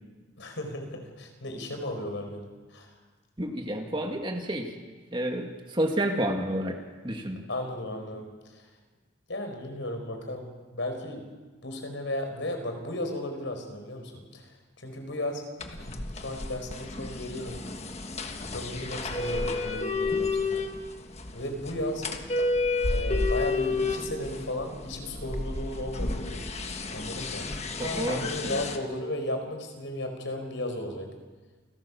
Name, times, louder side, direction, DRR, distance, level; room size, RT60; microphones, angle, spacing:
voice 1, 0.4-2.9 7.5-8.7 9.3-11.3 11.6-17.7 18.5-20.7 21.3-22.1 22.9-26.4 26.9-31.1, left 1 dB, 70° left, 4 dB, 4.7 m, -35 dB
voice 2, 3.4-4.8 5.1-7.4 27.8-28.6, right 1 dB, 25° right, 3 dB, 2.1 m, -30 dB
sound 1, 15.6-28.8, left 3 dB, 30° left, 1.5 m, -31 dB
28.5 x 17.5 x 7.2 m, 1.3 s
head